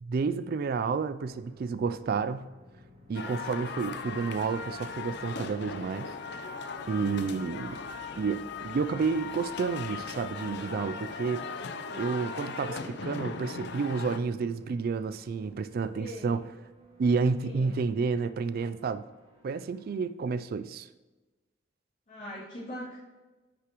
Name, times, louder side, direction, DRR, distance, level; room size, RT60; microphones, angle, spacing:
voice 1, 0.0-2.5 3.1-6.2 6.9-7.8 8.2-11.4 12.0-16.4 17.0-19.0 19.4-20.9, right 5 dB, 50° right, 12 dB, 0.3 m, -30 dB
sound 1, 1.2-20.0, equal, 35° right, 2.4 m, -57 dB
sound 2, 3.1-14.2, left 5 dB, 60° left, 0.6 m, -38 dB
voice 2, 15.9-16.4 17.4-17.8 22.1-23.0, equal, 45° left, -11 dB, 2.7 m, -41 dB
9.7 x 6.7 x 3.0 m, 1.2 s
head